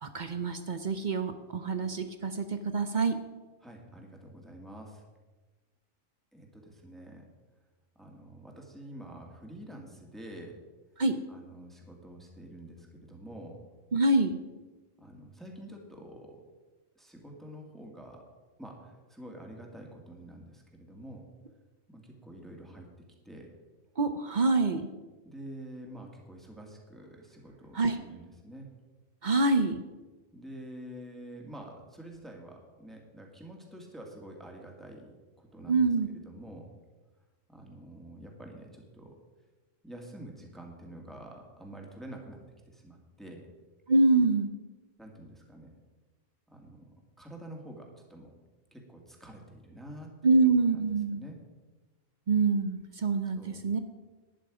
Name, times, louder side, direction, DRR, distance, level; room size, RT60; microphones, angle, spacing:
voice 1, 0.0-3.1 11.0-11.2 13.9-14.4 24.0-24.9 27.7-28.0 29.2-29.8 35.7-36.1 43.9-44.5 50.2-51.2 52.3-53.8, right 3 dB, 45° right, 9 dB, 0.7 m, -26 dB
voice 2, 3.6-5.0 6.3-7.3 8.0-10.6 11.3-13.6 15.0-16.4 17.0-18.3 18.6-21.3 21.9-22.9 23.3-23.5 25.2-28.7 30.3-35.1 35.4-35.8 36.3-36.7 37.5-39.2 39.8-42.4 42.7-43.4 45.0-45.7 46.5-46.8 47.2-48.3 48.7-50.4 50.7-51.4 53.4-53.6, right 1 dB, ahead, 0 dB, 1.9 m, -47 dB
12.0 x 10.0 x 5.0 m, 1.2 s
omnidirectional pair, 1.4 m